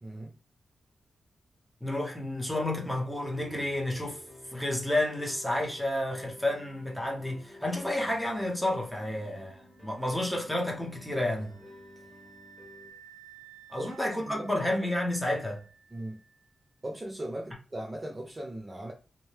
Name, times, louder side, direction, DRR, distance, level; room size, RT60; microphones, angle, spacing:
voice 1, 0.0-0.4 12.0-12.1 13.8-13.9 14.3-14.6 15.9-16.2 16.8-18.9, right 1 dB, 20° right, 0.3 m, -38 dB
voice 2, 1.8-4.2 4.5-11.5 13.7-15.6, left 1 dB, ahead, 0.8 m, -30 dB
sound 1, 2.5-12.9, left 1 dB, 20° left, 1.3 m, -52 dB
sound 2, 9.7-16.5, right 8 dB, 85° left, 0.9 m, -56 dB
2.7 x 2.2 x 3.2 m
wide cardioid pair, 115°, 0 cm